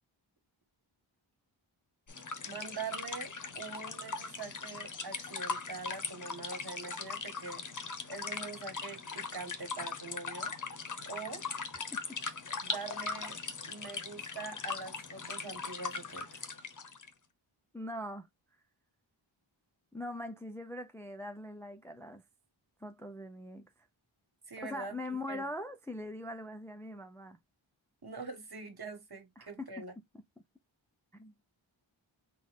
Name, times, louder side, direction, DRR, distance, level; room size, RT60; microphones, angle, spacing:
sound 1, 2.1-17.1, left 4 dB, 40° left, 0.7 m, -40 dB
voice 1, 2.4-7.6 8.1-10.5 11.1-11.4 12.6-13.4 13.6-16.5 24.5-25.0 25.3-25.5 28.0-29.9, right 4 dB, 50° right, 1.6 m, -44 dB
voice 2, 17.7-18.3 19.9-22.2 22.8-23.7 24.6-27.4 29.4-29.8 31.1-31.3, left 1 dB, 5° left, 0.5 m, -42 dB
4.0 x 2.3 x 3.5 m
wide cardioid pair, 75°, 48 cm